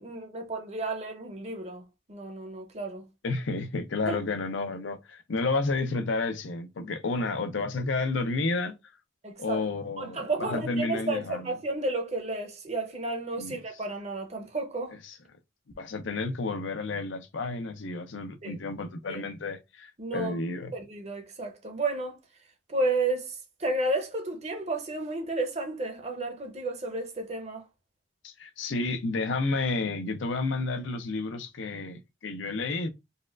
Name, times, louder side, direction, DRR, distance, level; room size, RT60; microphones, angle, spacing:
voice 1, 0.0-3.1 4.1-4.2 9.2-9.6 10.0-14.9 18.4-18.6 19.1-19.2 20.0-20.3 20.7-22.2 22.7-27.6, right 2 dB, 35° right, 0.7 m, -32 dB
voice 2, 3.2-8.8 9.4-11.5 13.4-13.5 15.1-15.2 15.8-20.7 28.2-32.9, left 3 dB, 70° left, 0.6 m, -31 dB
4.1 x 2.3 x 2.4 m
head